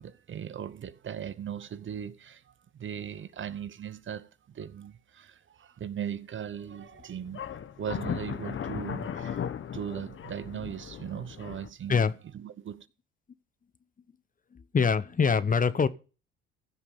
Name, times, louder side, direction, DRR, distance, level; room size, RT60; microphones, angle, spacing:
voice 1, 0.0-7.4 7.8-12.1 12.3-12.9, right 9 dB, 40° right, 1.0 m, -38 dB
sound 1, 6.5-6.9 7.3-11.7, left 8 dB, 45° left, 1.2 m, -37 dB
voice 2, 14.5-15.9, left 5 dB, 30° left, 0.9 m, -24 dB
15.5 x 7.1 x 5.6 m
hypercardioid pair, 65°, 29 cm